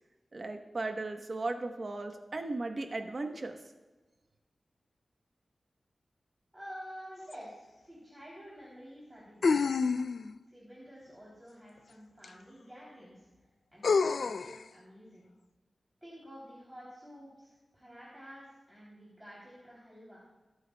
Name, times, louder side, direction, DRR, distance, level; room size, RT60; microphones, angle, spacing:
voice 1, 0.3-3.6, right 2 dB, 45° right, 5 dB, 1.1 m, -36 dB
voice 2, 6.5-10.0 10.5-13.3 13.7-15.3 16.0-20.2, equal, 10° right, -6 dB, 3.2 m, -50 dB
sound 1, 7.3-7.4 9.4-10.4 12.2-12.3 13.8-14.6, left 4 dB, 75° left, 0.3 m, -27 dB
21.0 x 9.3 x 2.3 m, 1.2 s
wide cardioid pair, 105°, 0 cm